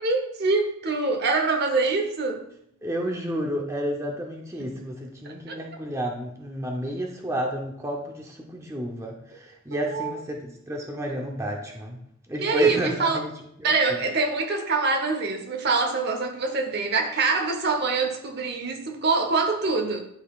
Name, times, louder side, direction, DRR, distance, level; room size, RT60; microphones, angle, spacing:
voice 1, 0.0-2.4 5.5-5.6 9.7-10.2 11.0-11.2 12.4-13.2 13.6-20.0, right 3 dB, 50° right, 4 dB, 0.8 m, -24 dB
voice 2, 2.8-12.0 12.3-13.3 13.6-14.0, equal, 15° right, 0 dB, 0.6 m, -31 dB
11.5 x 4.0 x 2.4 m, 0.74 s
head